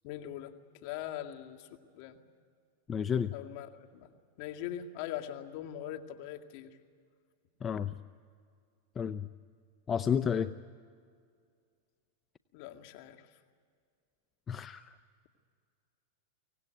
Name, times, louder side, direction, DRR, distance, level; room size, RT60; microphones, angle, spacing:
voice 1, 0.0-0.5 0.8-1.7 1.9-2.2 3.3-4.1 4.4-6.8 12.5-13.4, left 11 dB, 55° left, 5 dB, 2.2 m, -41 dB
voice 2, 2.9-3.3 7.6-7.9 9.0-9.3 9.9-10.5 14.5-15.0, left 7 dB, 25° left, 11 dB, 0.7 m, -31 dB
24.0 x 18.5 x 9.4 m, 2.1 s
hypercardioid pair, 110°, 0 cm